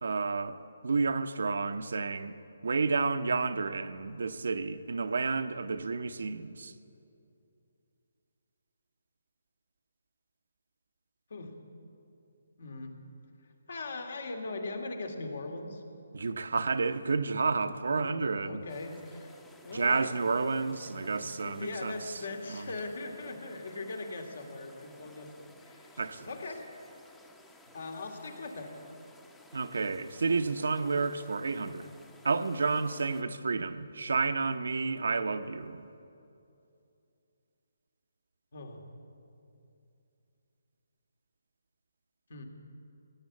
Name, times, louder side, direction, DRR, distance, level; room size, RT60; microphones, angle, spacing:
voice 1, 0.0-0.6 0.8-2.3 2.6-6.7 16.1-18.6 19.7-22.0 22.5-22.7 26.0-26.3 29.5-31.9 32.2-35.8, right 4 dB, 70° right, 10 dB, 0.8 m, -30 dB
voice 2, 12.6-13.0 13.7-15.8 17.7-19.4 19.6-20.1 20.7-20.8 21.1-26.6 27.7-28.7 38.5-38.8 42.3-42.4, left 2 dB, 65° left, 3 dB, 2.4 m, -40 dB
sound 1, 18.7-33.2, left 2 dB, 5° left, 0.8 m, -57 dB
17.0 x 9.0 x 8.5 m, 2.6 s
hypercardioid pair, 155°, 0 cm